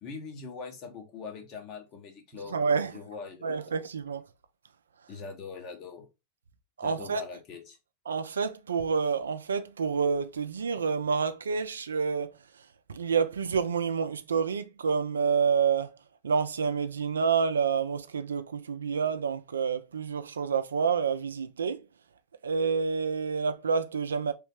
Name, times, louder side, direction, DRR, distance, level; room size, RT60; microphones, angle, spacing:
voice 1, 0.0-3.7 5.1-6.1 6.8-7.8, left 5 dB, 45° left, 0.9 m, -42 dB
voice 2, 2.5-3.0 3.4-4.2 6.8-7.2 8.1-12.3 12.9-15.9 16.2-21.8 22.4-24.3, right 5 dB, 85° right, 0.3 m, -28 dB
3.2 x 2.1 x 3.1 m
hypercardioid pair, 100°, 0 cm